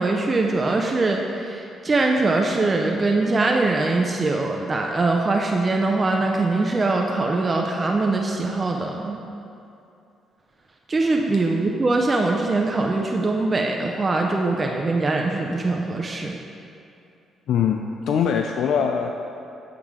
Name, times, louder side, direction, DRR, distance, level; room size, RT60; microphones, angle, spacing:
voice 1, 0.0-9.2 10.9-16.4, right 3 dB, 30° right, 1 dB, 0.5 m, -22 dB
voice 2, 17.5-19.1, left 7 dB, 75° left, 3 dB, 0.3 m, -22 dB
9.0 x 4.7 x 3.6 m, 2.6 s
cardioid pair, 90°, 0 cm